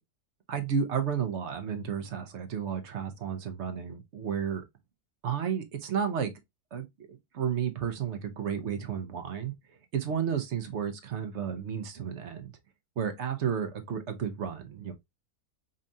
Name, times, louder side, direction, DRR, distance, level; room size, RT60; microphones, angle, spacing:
voice 1, 0.5-4.6 5.2-6.3 6.7-9.5 9.9-12.5 13.0-14.9, right 7 dB, 55° right, 0.9 m, -32 dB
5.3 x 2.4 x 2.6 m
omnidirectional pair, 1.6 m